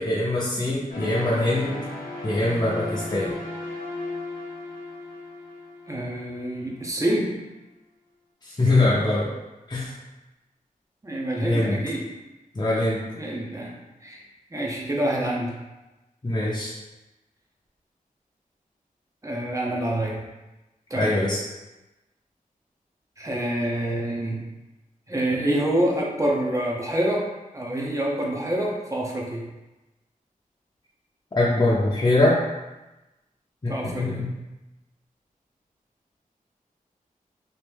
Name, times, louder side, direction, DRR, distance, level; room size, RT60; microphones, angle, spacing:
voice 1, 0.0-1.8 2.2-3.3 8.4-9.3 9.7-9.9 11.4-11.8 12.5-13.0 16.2-16.7 20.9-21.4 31.3-32.4 33.6-34.3, left 2 dB, 30° left, -7 dB, 0.6 m, -23 dB
sound 1, 0.9-6.8, left 2 dB, 90° left, 0.9 m, -36 dB
voice 2, 5.9-7.4 11.0-12.1 13.2-13.7 14.0-14.2 14.5-15.6 19.2-20.2 20.9-21.1 23.2-24.5 25.1-29.5 33.7-34.3, right 1 dB, 20° right, -2 dB, 0.7 m, -27 dB
3.1 x 2.6 x 3.4 m, 1.0 s
wide cardioid pair, 75°, 15 cm